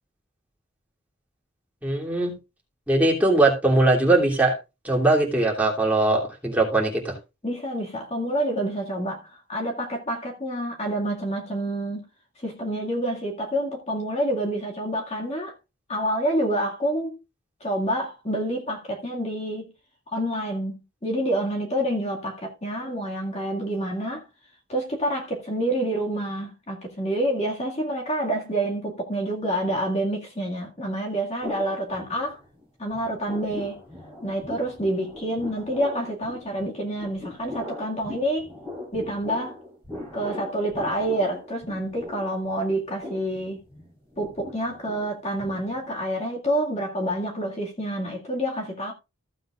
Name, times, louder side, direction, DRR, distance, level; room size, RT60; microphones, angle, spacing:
voice 1, 1.8-2.3 2.9-4.6 4.8-7.2, right 2 dB, 5° right, 2.9 m, -20 dB
voice 2, 7.4-12.0 12.4-15.5 15.9-17.2 17.6-19.7 20.1-24.2 24.7-32.4 32.8-33.8 34.2-38.5 38.9-39.6 40.1-43.6 44.2-48.9, right 1 dB, 30° left, 2.0 m, -28 dB
sound 1, 31.4-32.7 32.9-46.1, left 1 dB, 15° left, 4.1 m, -40 dB
15.0 x 7.8 x 2.5 m
head